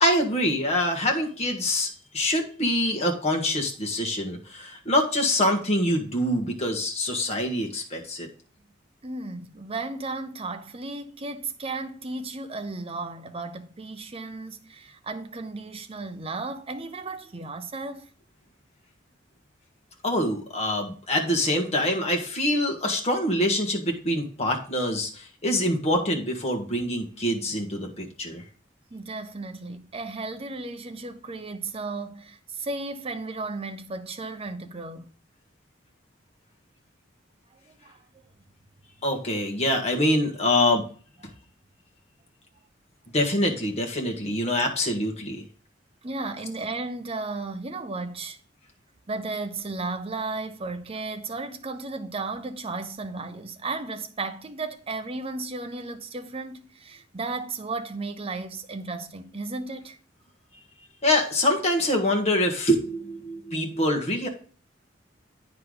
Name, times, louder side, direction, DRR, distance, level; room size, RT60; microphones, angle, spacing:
voice 1, 0.0-8.3 20.0-28.4 39.0-40.8 43.1-45.4 61.0-64.3, left 1 dB, 35° left, 1.6 m, -25 dB
voice 2, 9.0-18.1 28.9-35.1 37.7-38.0 43.5-43.6 46.0-48.4 49.1-60.0, right 3 dB, 30° right, 0.7 m, -34 dB
9.2 x 4.9 x 3.9 m
head